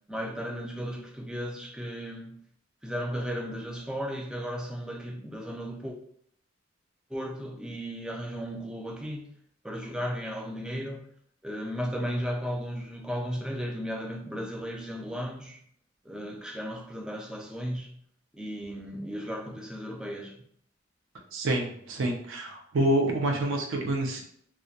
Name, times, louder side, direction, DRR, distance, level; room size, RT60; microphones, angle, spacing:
voice 1, 0.1-2.4 2.8-6.0 7.1-9.3 9.6-11.0 11.4-15.6 16.0-17.9 18.3-20.4, equal, 5° right, 0 dB, 0.4 m, -35 dB
voice 2, 21.3-24.2, right 1 dB, 75° right, 1 dB, 0.5 m, -27 dB
2.3 x 2.1 x 2.6 m, 0.66 s
head